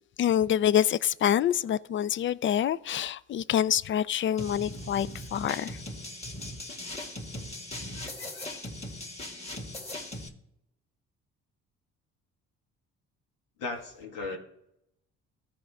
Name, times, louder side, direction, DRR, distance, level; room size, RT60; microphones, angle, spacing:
voice 1, 0.2-5.7, left 10 dB, 40° left, 0.4 m, -26 dB
sound 1, 4.4-10.3, left 1 dB, 20° left, 1.6 m, -39 dB
voice 2, 13.6-14.4, left 3 dB, 90° left, 1.8 m, -35 dB
14.5 x 5.0 x 3.5 m
supercardioid pair, 65°, 32 cm